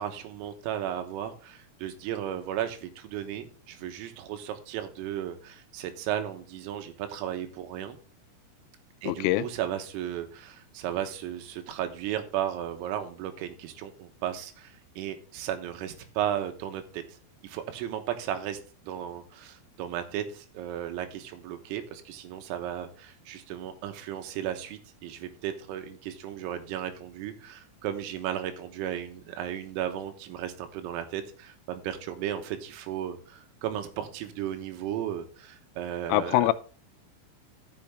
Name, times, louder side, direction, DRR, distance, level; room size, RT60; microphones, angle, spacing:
voice 1, 0.0-8.0 9.0-17.0 17.4-18.6 18.8-36.4, right 11 dB, 90° right, 8 dB, 3.8 m, -35 dB
voice 2, 9.1-9.5 36.1-36.5, left 16 dB, 90° left, 14 dB, 3.2 m, -23 dB
13.5 x 6.4 x 3.5 m, 0.39 s
omnidirectional pair, 5.8 m